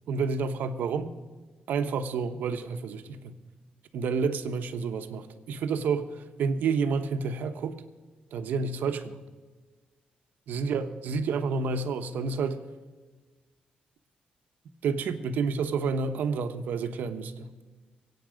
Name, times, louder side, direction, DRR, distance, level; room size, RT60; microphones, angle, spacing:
voice 1, 0.1-1.1 1.7-3.4 3.9-7.8 8.3-9.2 10.5-12.6 14.8-17.5, right 5 dB, 85° right, 8 dB, 1.1 m, -29 dB
22.5 x 8.8 x 5.2 m, 1.3 s
cardioid pair, 130°, 3 cm